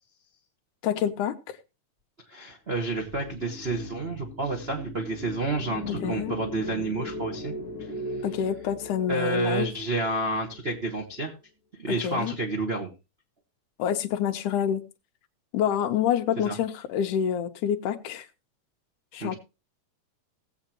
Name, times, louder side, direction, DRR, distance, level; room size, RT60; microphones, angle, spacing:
voice 1, 0.8-1.6 5.9-6.3 8.2-9.7 11.9-12.3 13.8-14.8 15.5-18.3 19.1-19.4, left 9 dB, 75° left, 2.3 m, -27 dB
voice 2, 2.3-7.5 7.8-7.9 9.1-11.3 11.8-12.9 16.4-16.6 19.2-19.4, right 2 dB, 70° right, 0.5 m, -30 dB
sound 1, 2.8-11.2, left 1 dB, 30° left, 2.3 m, -39 dB
18.5 x 7.9 x 3.0 m
omnidirectional pair, 3.7 m